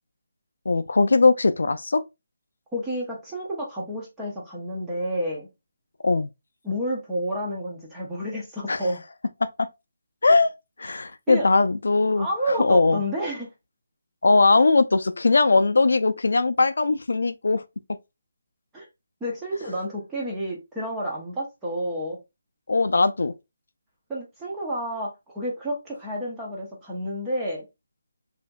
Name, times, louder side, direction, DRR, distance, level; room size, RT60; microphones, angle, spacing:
voice 1, 0.7-2.0 6.0-6.3 8.7-8.8 9.4-9.7 10.2-10.5 10.8-13.0 14.2-17.6 22.7-23.3, left 3 dB, 70° left, 0.4 m, -20 dB
voice 2, 2.7-5.5 6.6-9.0 11.3-11.5 12.2-13.5 18.7-18.9 19.2-22.2 24.1-25.1 25.3-27.6, equal, 5° right, 0.6 m, -30 dB
4.2 x 2.6 x 2.2 m
hypercardioid pair, 180°, 0 cm